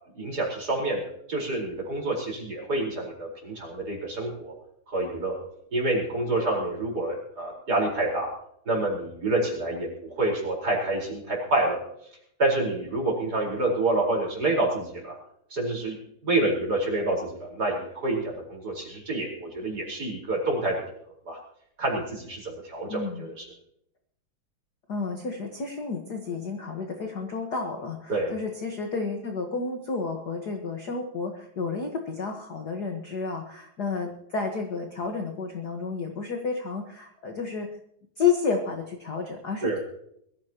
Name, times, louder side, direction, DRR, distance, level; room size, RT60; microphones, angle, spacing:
voice 1, 0.1-1.0 1.3-4.5 4.9-5.4 5.7-8.3 8.7-11.8 12.4-15.1 15.5-16.0 16.2-20.8 21.2-21.4 21.8-23.5 28.1-28.3 39.6-39.8, right 2 dB, 25° right, -2 dB, 4.8 m, -27 dB
voice 2, 22.9-23.2 24.9-37.7 38.2-39.8, left 5 dB, 55° left, 3 dB, 1.1 m, -31 dB
22.5 x 15.0 x 3.0 m, 0.71 s
omnidirectional pair, 3.9 m